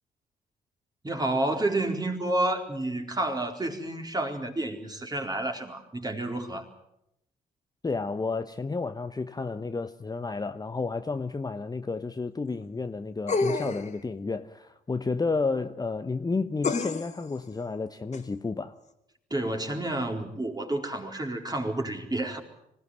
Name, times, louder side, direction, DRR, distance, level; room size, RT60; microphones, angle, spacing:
voice 1, 1.0-6.7 19.3-22.4, right 1 dB, 20° right, 4.3 m, -30 dB
voice 2, 7.8-18.8, left 4 dB, 20° left, 1.0 m, -31 dB
Content warning, 13.3-14.0 16.6-17.2 18.1-18.2, left 3 dB, 35° left, 2.4 m, -28 dB
26.0 x 17.0 x 9.4 m
figure-of-eight pair, 40°, 20 cm